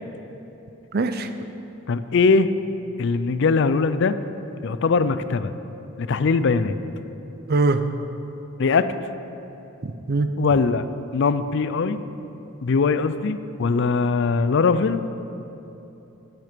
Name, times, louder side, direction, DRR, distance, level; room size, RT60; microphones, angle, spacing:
voice 1, 0.9-1.3 7.5-7.8 9.8-10.3, right 3 dB, 45° right, 9 dB, 0.6 m, -22 dB
voice 2, 1.9-2.5 3.0-4.2 4.6-5.5 6.0-6.8 8.6-8.9 10.4-10.9 11.1-12.0 12.6-15.1, left 4 dB, 55° left, 12 dB, 0.4 m, -21 dB
11.5 x 9.4 x 5.2 m, 3.0 s
head